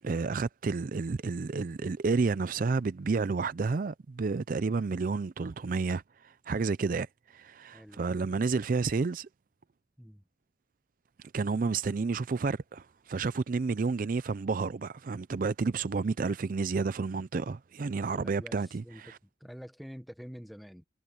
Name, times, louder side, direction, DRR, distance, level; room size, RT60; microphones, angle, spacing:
voice 1, 0.0-9.3 11.3-19.2, right 4 dB, 45° right, 0.4 m, -30 dB
voice 2, 7.7-8.2 10.0-10.2 18.1-20.8, equal, ahead, 1.2 m, -47 dB
head